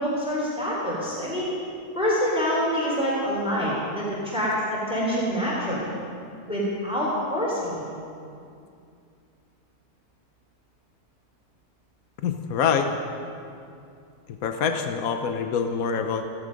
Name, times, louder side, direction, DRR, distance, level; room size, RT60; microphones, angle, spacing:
voice 1, 0.0-1.5 1.9-5.9 6.5-7.8, equal, 5° right, -6 dB, 3.5 m, -26 dB
voice 2, 12.2-12.9 14.4-16.2, left 6 dB, 70° left, 6 dB, 1.3 m, -25 dB
17.0 x 16.0 x 5.3 m, 2.5 s
omnidirectional pair, 1.6 m